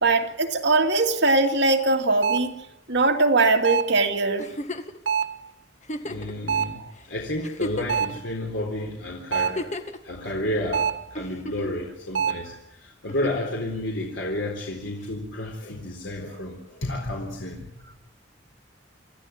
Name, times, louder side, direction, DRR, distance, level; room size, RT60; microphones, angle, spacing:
voice 1, 0.0-2.5 2.9-4.5, right 3 dB, 65° right, 3 dB, 2.5 m, -21 dB
sound 1, 2.2-2.6 3.6-4.0 5.1-5.5 6.5-6.8 7.9-8.3 9.3-9.7 10.7-11.1 12.1-12.5, right 7 dB, 85° right, 1.7 m, -25 dB
Giggle, 4.4-5.0 5.8-6.3 7.0-7.1 7.4-8.2 9.3-10.0 11.2-11.8 13.1-13.5 15.0-15.1, left 1 dB, 40° left, 1.8 m, -33 dB
voice 2, 6.0-6.8 7.1-9.6 10.0-12.5 12.8-17.7, left 1 dB, 75° left, 0 dB, 3.9 m, -31 dB
27.5 x 14.5 x 8.7 m, 0.79 s
head